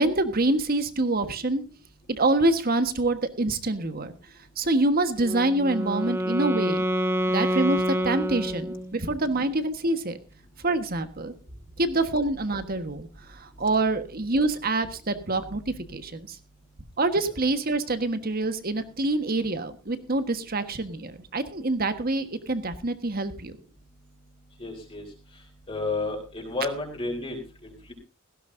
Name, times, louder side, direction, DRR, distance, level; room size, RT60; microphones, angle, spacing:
voice 1, 0.0-1.6 2.1-4.1 4.6-6.8 7.3-10.2 10.6-11.3 11.8-16.4 17.0-23.6, right 2 dB, 50° right, 10 dB, 1.4 m, -26 dB
Wind instrument woodwind instrument, 5.2-9.1, equal, 15° right, 0.9 m, -27 dB
voice 2, 24.6-25.0 25.7-27.9, left 3 dB, 30° left, 0 dB, 3.6 m, -32 dB
17.5 x 15.5 x 2.7 m, 0.30 s
head